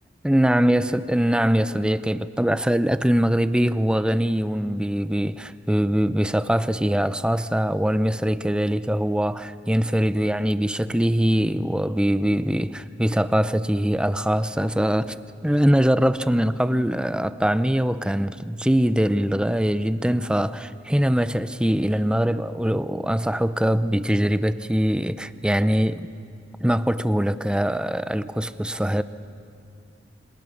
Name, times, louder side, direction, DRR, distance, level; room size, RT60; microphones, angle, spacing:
voice 1, 0.2-15.2 15.4-26.1 26.6-29.0, equal, 5° right, 0.6 m, -22 dB
27.5 x 26.0 x 7.2 m
head